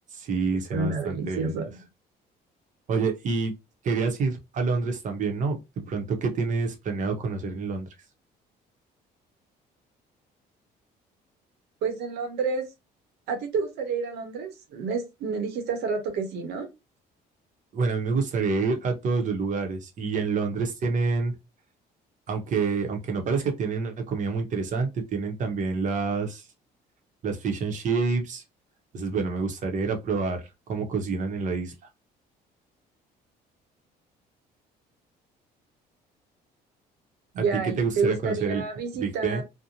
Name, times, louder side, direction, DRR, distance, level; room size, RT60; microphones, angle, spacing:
voice 1, 0.2-1.5 2.9-3.5 3.8-7.9 17.7-21.3 22.3-26.4 27.2-28.4 28.9-31.7 37.4-37.5 37.8-38.6 39.0-39.4, right 4 dB, 45° right, 0.8 m, -27 dB
voice 2, 0.7-1.8 11.8-12.7 13.3-16.7 37.3-39.4, right 4 dB, 85° right, 0.8 m, -29 dB
2.6 x 2.1 x 2.8 m
cardioid pair, 110°, 17 cm